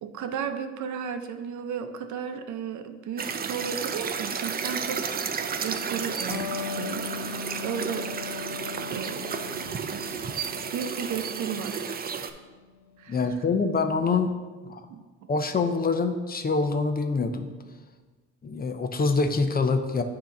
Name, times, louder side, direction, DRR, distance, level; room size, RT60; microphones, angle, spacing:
voice 1, 0.0-5.3 5.6-8.6 8.9-9.3 9.9-10.1 10.7-12.1 13.0-13.3 14.9-15.3, right 7 dB, 75° right, 7 dB, 0.6 m, -34 dB
sound 1, 3.2-12.3, right 6 dB, 30° right, 0.4 m, -32 dB
Electric guitar, 6.3-13.4, left 7 dB, 80° left, 0.8 m, -39 dB
voice 2, 13.1-14.3 14.6-14.8 15.3-17.5 18.4-20.0, left 4 dB, 30° left, 7 dB, 0.6 m, -25 dB
8.0 x 2.9 x 5.1 m, 1.3 s
cardioid pair, 90°, 30 cm